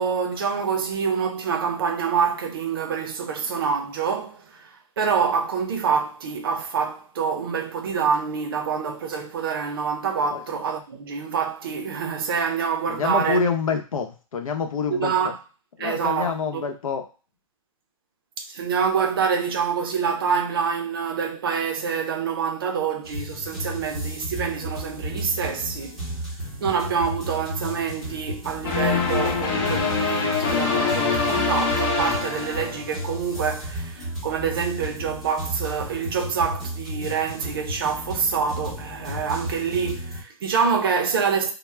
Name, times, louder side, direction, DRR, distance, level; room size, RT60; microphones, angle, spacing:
voice 1, 0.0-13.4 14.9-15.4 15.8-16.6 18.4-26.0 26.6-41.5, right 6 dB, 40° right, 0.5 m, -26 dB
voice 2, 12.9-15.3 15.8-17.0, left 5 dB, 75° left, 0.7 m, -26 dB
sound 1, 23.0-40.2, equal, ahead, 0.7 m, -34 dB
sound 2, 28.6-33.1, left 5 dB, 40° left, 0.9 m, -24 dB
2.2 x 2.0 x 3.2 m
hypercardioid pair, 165°, 18 cm